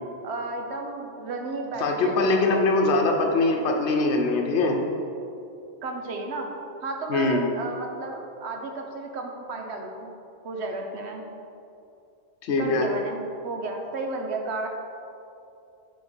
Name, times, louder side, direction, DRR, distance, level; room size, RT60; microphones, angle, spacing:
voice 1, 0.2-3.0 5.8-6.5 6.8-10.1 10.4-11.3 12.6-14.7, right 3 dB, 70° right, 3 dB, 1.1 m, -33 dB
voice 2, 1.8-4.8 7.1-7.4 12.4-12.9, left 3 dB, 70° left, 2 dB, 1.0 m, -22 dB
9.9 x 3.8 x 4.3 m, 2.6 s
omnidirectional pair, 1.2 m